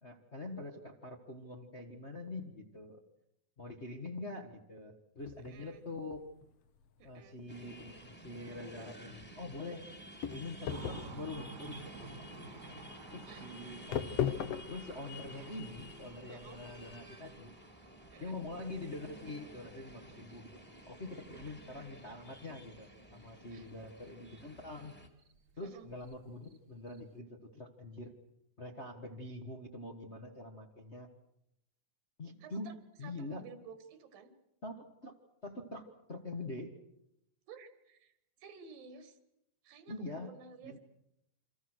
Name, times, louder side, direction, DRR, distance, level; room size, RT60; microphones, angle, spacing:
voice 1, 0.0-3.0 3.6-6.3 7.0-9.8 10.3-12.3 13.1-17.5 18.2-20.6 20.8-24.9 25.6-28.1 28.6-31.1 32.2-33.4 34.6-35.1 35.4-36.7 39.9-40.3 40.6-40.8, left 2 dB, 30° left, 2 dB, 1.2 m, -45 dB
sound 1, 5.2-16.6, left 9 dB, 60° left, 1.7 m, -41 dB
voice 2, 5.5-5.9 7.0-7.4 13.3-13.5 16.3-16.6 18.1-18.4 21.3-21.6 23.5-23.7 25.6-25.9 32.4-34.3 37.5-39.2 39.6-40.8, right 5 dB, 90° right, 9 dB, 3.8 m, -53 dB
sound 2, 7.5-25.1, equal, 5° left, 2.2 m, -52 dB
sound 3, 10.7-20.8 21.1-22.1 22.4-22.5 22.8-23.7 24.0-24.1 24.4-27.2, right 3 dB, 45° right, 1.4 m, -53 dB
28.0 x 25.5 x 6.4 m, 0.81 s
omnidirectional pair, 4.0 m